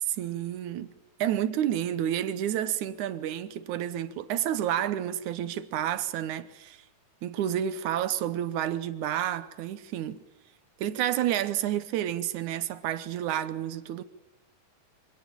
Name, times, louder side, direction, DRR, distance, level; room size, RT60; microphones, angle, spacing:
voice 1, 0.2-0.9 1.2-6.8 7.2-10.2 10.8-14.0, right 11 dB, 70° right, 2.0 m, -30 dB
25.0 x 17.5 x 8.8 m
omnidirectional pair, 4.3 m